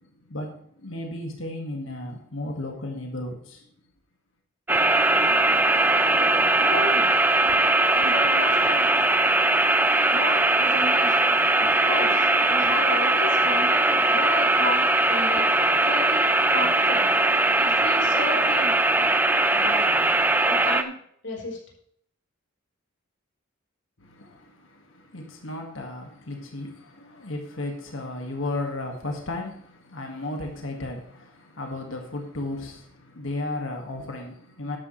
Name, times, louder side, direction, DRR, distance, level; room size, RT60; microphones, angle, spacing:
voice 1, 0.3-0.6 0.8-3.6 24.0-34.8, left 2 dB, 80° left, 1.9 m, -34 dB
sound 1, 4.7-20.8, right 2 dB, 10° right, 0.6 m, -20 dB
voice 2, 6.6-7.1 7.9-8.9 10.1-17.1 17.6-18.8 19.5-19.9 20.4-20.9 21.2-21.6, left 1 dB, 60° left, 4.4 m, -33 dB
12.5 x 10.0 x 3.2 m
head